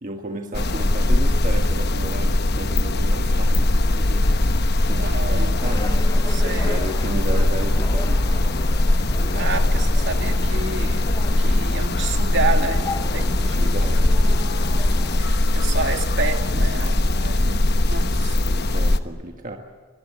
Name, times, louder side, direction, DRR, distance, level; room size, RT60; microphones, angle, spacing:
voice 1, 0.0-4.3 4.9-6.0 6.6-8.4 13.5-14.2 18.4-19.6, right 1 dB, 35° right, 3 dB, 1.5 m, -33 dB
sound 1, 0.5-19.0, left 1 dB, 50° left, 1.1 m, -20 dB
voice 2, 4.9-5.6 6.3-6.8 9.2-11.0 11.4-13.7 15.2-18.4, right 3 dB, 55° right, 5 dB, 2.3 m, -30 dB
sound 2, 5.6-15.2, left 2 dB, 15° left, 1.0 m, -35 dB
24.5 x 19.5 x 8.6 m, 1.5 s
head